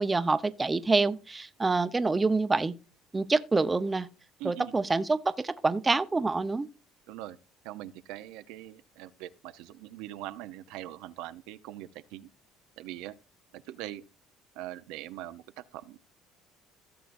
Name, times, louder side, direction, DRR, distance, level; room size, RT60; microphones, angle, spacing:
voice 1, 0.0-2.7 3.1-4.1 4.4-6.7, right 3 dB, 20° right, 0.8 m, -26 dB
voice 2, 4.4-4.7 7.1-7.4 7.6-12.3 12.8-13.1 13.5-14.0 14.6-16.0, right 14 dB, 80° right, 0.7 m, -42 dB
16.5 x 6.8 x 2.6 m
cardioid pair, 100°, 0 cm